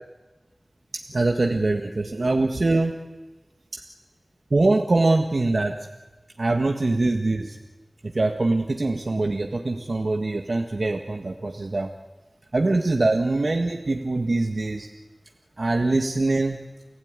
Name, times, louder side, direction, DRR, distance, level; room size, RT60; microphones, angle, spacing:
voice 1, 0.9-2.9 3.7-3.8 4.5-5.8 6.4-7.6 8.1-11.9 12.5-14.9 15.6-16.6, right 2 dB, 70° right, 4 dB, 1.7 m, -23 dB
29.5 x 16.0 x 9.8 m, 1.2 s
wide cardioid pair, 40°, 0 cm